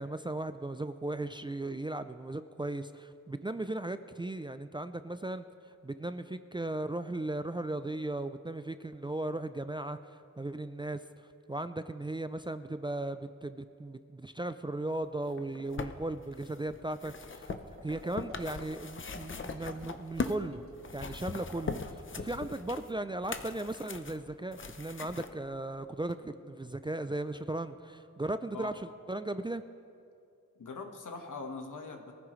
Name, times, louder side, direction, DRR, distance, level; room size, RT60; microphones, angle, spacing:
voice 1, 0.0-5.4 5.8-17.5 17.8-20.6 20.9-29.6, right 2 dB, 15° right, 10 dB, 0.4 m, -37 dB
sound 1, 15.3-20.5 20.8-25.3 26.1-26.2, left 4 dB, 40° left, 0.7 m, -40 dB
sound 2, 17.1-22.7, right 1 dB, 45° right, 3.0 m, -52 dB
voice 2, 30.6-32.1, left 4 dB, 75° left, 4 dB, 1.5 m, -42 dB
22.0 x 14.5 x 3.2 m, 2.5 s
wide cardioid pair, 100°, 31 cm